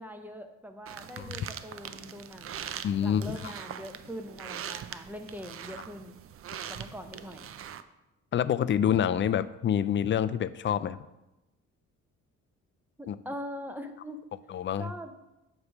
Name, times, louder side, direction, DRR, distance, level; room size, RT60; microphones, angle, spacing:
voice 1, 0.0-6.2 6.7-7.5 13.0-14.2 14.8-15.1, equal, 5° right, 6 dB, 0.7 m, -42 dB
sound 1, 0.9-7.8, right 9 dB, 50° right, 0.5 m, -42 dB
voice 2, 2.8-3.5 8.3-11.0 13.1-13.2 14.5-14.9, left 9 dB, 40° left, 14 dB, 0.4 m, -27 dB
8.3 x 3.2 x 6.4 m, 0.95 s
cardioid pair, 90°, 30 cm